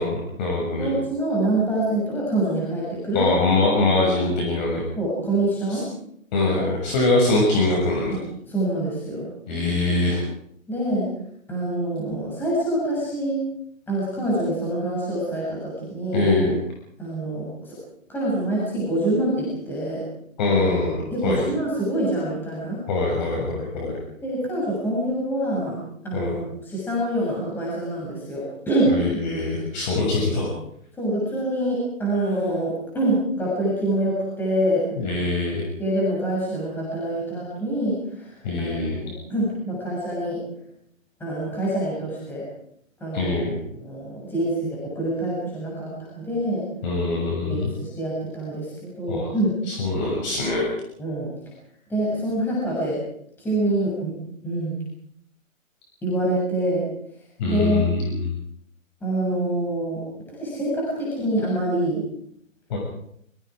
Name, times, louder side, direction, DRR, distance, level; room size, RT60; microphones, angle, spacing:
voice 1, 0.0-0.9 3.1-4.8 5.7-5.8 6.3-8.2 9.5-10.2 16.1-16.6 20.4-21.5 22.9-24.0 26.1-26.3 28.9-30.5 35.0-35.6 38.4-39.0 43.1-43.6 46.8-47.7 49.1-49.3 49.7-50.7 57.4-58.3 62.7-62.8, left 2 dB, 35° left, -1 dB, 6.8 m, -23 dB
voice 2, 0.8-3.3 5.0-5.9 6.5-6.6 8.1-8.2 8.5-9.3 10.7-11.1 11.5-13.4 13.9-16.3 17.0-17.8 18.1-20.0 21.1-22.8 24.2-29.0 30.0-30.2 30.9-34.9 35.8-38.8 39.0-40.4 41.2-42.4 43.0-43.4 43.7-46.6 47.4-49.6 51.0-51.3 51.9-53.0 53.4-54.2 54.4-54.8 56.0-56.9 57.5-57.8 59.0-60.0 60.3-62.0, right 1 dB, 5° left, -6 dB, 7.0 m, -25 dB
27.0 x 24.0 x 5.0 m, 0.70 s
hypercardioid pair, 155°, 41 cm